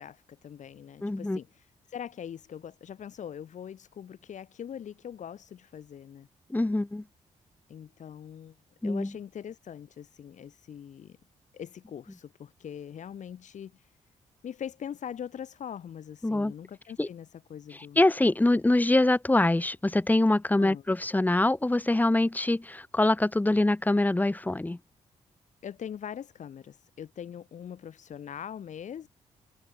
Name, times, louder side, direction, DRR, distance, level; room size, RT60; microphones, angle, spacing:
voice 1, 0.0-6.3 7.7-8.5 8.8-11.2 11.5-13.9 14.4-18.0 20.6-20.8 25.6-29.1, left 8 dB, 70° left, 5.9 m, -42 dB
voice 2, 1.0-1.4 6.5-7.0 8.8-9.1 16.2-16.5 17.0-17.1 18.0-24.8, left 2 dB, 15° left, 0.9 m, -24 dB
cardioid pair, 65°, 13 cm